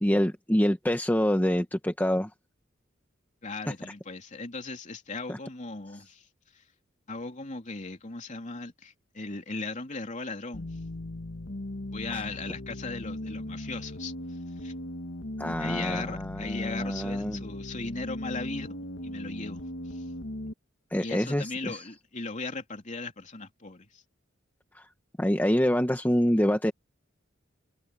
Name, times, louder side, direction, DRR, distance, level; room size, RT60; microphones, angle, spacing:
voice 1, 0.0-2.3 5.3-5.4 12.1-12.2 15.4-17.4 20.9-21.8 24.7-24.9 25.2-26.7, equal, 10° left, 1.2 m, -26 dB
voice 2, 3.4-6.3 6.5-6.6 7.1-10.7 11.9-14.7 15.6-20.0 21.0-24.0, left 3 dB, 40° left, 3.1 m, -38 dB
sound 1, 10.5-20.5, left 1 dB, 65° left, 1.6 m, -38 dB
head